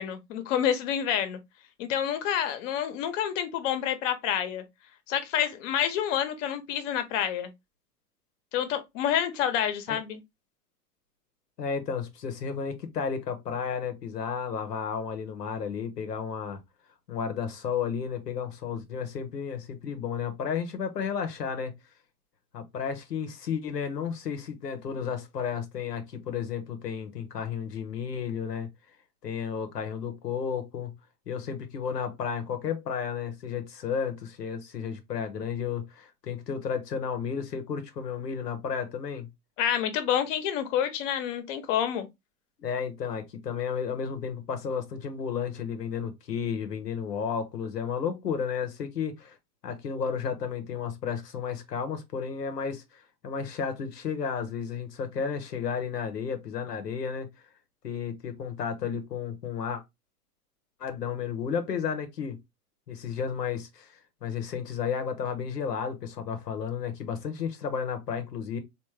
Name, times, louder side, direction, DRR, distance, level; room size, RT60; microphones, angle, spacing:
voice 1, 0.0-1.4 1.8-4.6 5.1-7.5 8.5-10.2 39.6-42.1, left 9 dB, 50° left, 0.9 m, -28 dB
voice 2, 11.6-16.6 17.1-21.7 22.5-28.7 29.2-30.9 31.3-39.3 42.6-49.4 49.6-57.3 57.8-59.8 60.8-62.4 62.9-68.6, left 6 dB, 85° left, 0.9 m, -32 dB
3.5 x 2.5 x 3.1 m
hypercardioid pair, 95°, 47 cm